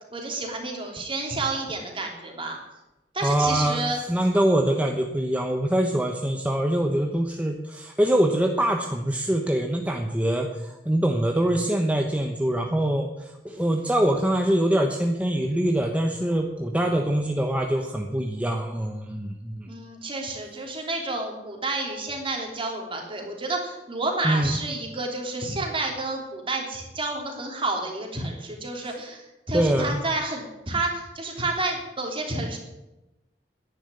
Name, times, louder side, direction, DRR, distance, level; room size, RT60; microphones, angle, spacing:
voice 1, 0.1-2.6 3.1-4.0 19.7-32.6, right 2 dB, 30° right, 2 dB, 3.2 m, -30 dB
voice 2, 3.2-3.8 4.1-19.7 24.2-24.6 28.8-28.9 29.5-30.0, right 1 dB, 10° right, 2 dB, 1.1 m, -24 dB
10.5 x 10.5 x 9.7 m, 0.99 s
head